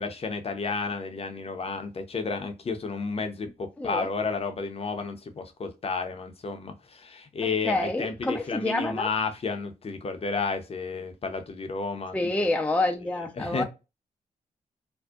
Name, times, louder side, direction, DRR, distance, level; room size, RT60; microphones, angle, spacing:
voice 1, 0.0-12.5 13.4-13.6, left 4 dB, 45° left, 0.7 m, -32 dB
voice 2, 3.8-4.1 7.4-9.1 12.1-13.6, left 2 dB, 10° left, 0.5 m, -28 dB
2.6 x 2.1 x 2.3 m
cardioid pair, 60°, 14 cm